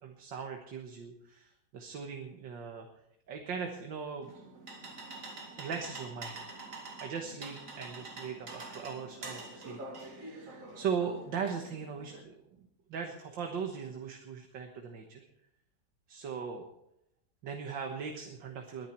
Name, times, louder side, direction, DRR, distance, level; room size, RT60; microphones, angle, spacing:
voice 1, 0.0-2.9 3.3-4.3 5.6-6.4 7.0-15.3 16.1-16.6 17.4-18.9, right 6 dB, 85° right, 3 dB, 2.0 m, -39 dB
sound 1, 4.2-12.2, right 2 dB, 45° right, 2.8 m, -46 dB
21.0 x 10.5 x 4.5 m, 0.80 s
omnidirectional pair, 2.0 m